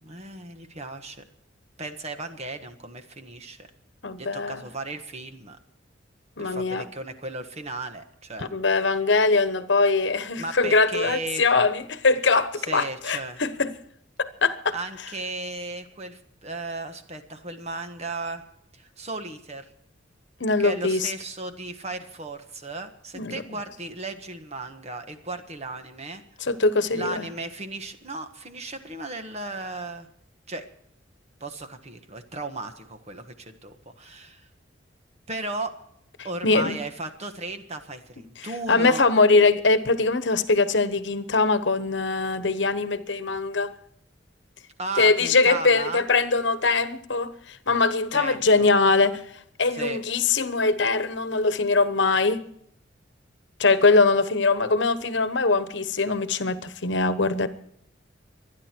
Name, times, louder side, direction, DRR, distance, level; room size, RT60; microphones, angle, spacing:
voice 1, 0.0-1.2 1.8-3.6 4.2-5.6 6.4-8.5 10.4-11.4 12.6-13.4 14.7-18.4 18.7-19.7 20.6-26.2 26.9-30.1 30.5-30.6 31.4-34.5 35.3-35.8 36.2-39.1 44.8-46.0 48.1-48.7 49.7-50.0, right 2 dB, 35° right, 1.5 m, -35 dB
voice 2, 4.0-4.6 6.4-6.8 8.4-13.7 14.2-14.7 20.4-21.1 23.1-23.4 26.4-27.3 36.4-36.8 38.4-43.7 45.0-49.2 49.6-52.4 53.6-57.5, left 3 dB, 65° left, 1.1 m, -22 dB
25.0 x 10.0 x 4.5 m
head